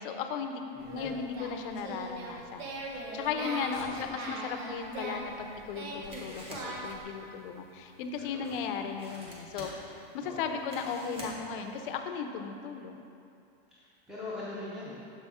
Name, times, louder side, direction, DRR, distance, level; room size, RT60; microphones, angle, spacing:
voice 1, 0.0-0.6 0.9-9.7 10.1-13.1, left 6 dB, 55° left, 6 dB, 0.6 m, -36 dB
voice 2, 0.7-1.1 3.7-4.1 8.1-8.6 10.2-10.5 13.7-15.0, left 2 dB, ahead, -10 dB, 0.6 m, -42 dB
Singing, 0.8-7.0, right 2 dB, 70° right, 1.2 m, -40 dB
sound 1, 4.4-12.0, equal, 15° right, 1.1 m, -50 dB
7.3 x 5.5 x 3.5 m, 2.6 s
supercardioid pair, 160°, 32 cm